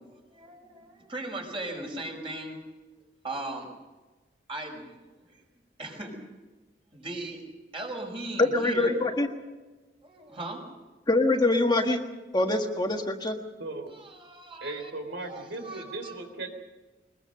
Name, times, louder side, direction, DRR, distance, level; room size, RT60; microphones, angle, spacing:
voice 1, 0.1-2.6 3.2-3.7 4.5-5.4 5.8-6.2 6.9-7.4 7.7-9.1 10.0-10.7 13.9-14.9 15.3-16.1, right 2 dB, 30° right, 2 dB, 5.1 m, -38 dB
voice 2, 8.4-9.3 11.1-12.0 12.3-13.4, left 2 dB, 25° left, 3 dB, 1.5 m, -24 dB
voice 3, 13.6-13.9 14.6-16.5, right 2 dB, 75° right, 5 dB, 3.6 m, -37 dB
22.0 x 21.0 x 6.6 m, 1.2 s
head